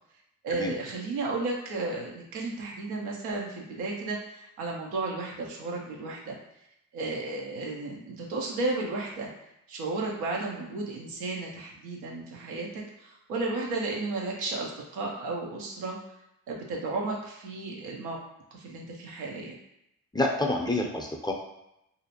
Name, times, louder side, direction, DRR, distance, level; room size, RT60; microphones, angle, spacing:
voice 1, 0.4-6.3 6.9-9.3 9.7-16.0 16.5-18.2 18.5-19.6, right 3 dB, 85° right, -1 dB, 0.6 m, -33 dB
voice 2, 20.1-21.3, left 2 dB, 10° left, 0 dB, 0.5 m, -28 dB
2.6 x 2.1 x 2.8 m, 0.82 s
hypercardioid pair, 45°, 38 cm